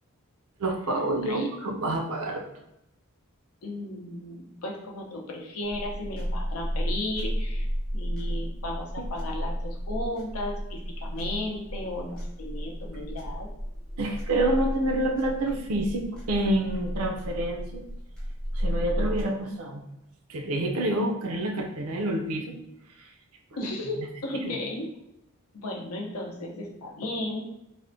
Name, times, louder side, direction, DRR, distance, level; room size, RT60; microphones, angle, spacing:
voice 1, 0.6-2.5 9.0-9.1 14.0-17.8 18.5-19.8 20.3-22.6 23.0-23.1 23.6-23.7 24.0-24.1 24.4-24.6, right 1 dB, 70° right, 3 dB, 0.5 m, -28 dB
voice 2, 3.6-7.7 7.9-13.5 23.6-24.9 25.5-27.5, left 1 dB, 75° left, 0 dB, 0.6 m, -35 dB
sound 1, 5.6-19.2, equal, 5° left, 0.5 m, -33 dB
3.4 x 2.1 x 2.5 m, 0.84 s
head